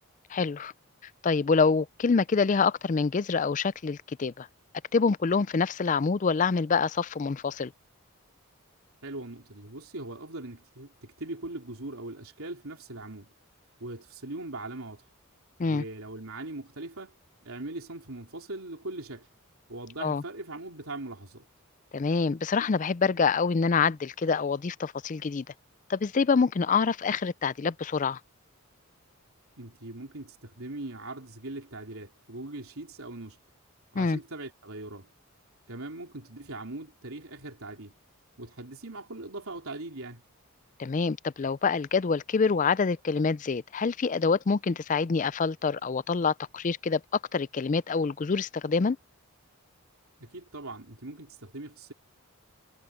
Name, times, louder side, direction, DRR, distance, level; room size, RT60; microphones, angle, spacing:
voice 1, 0.3-0.7 1.2-4.5 4.9-7.7 15.6-15.8 20.0-20.2 21.9-25.4 25.9-28.2 34.0-34.2 40.8-47.0 47.3-49.0, left 5 dB, 35° left, 0.4 m, -26 dB
voice 2, 9.0-13.3 13.8-15.0 15.6-17.1 17.4-19.3 19.7-21.5 29.6-33.4 33.9-35.1 35.7-38.0 38.4-40.2 50.2-51.9, right 2 dB, 70° right, 3.6 m, -40 dB
head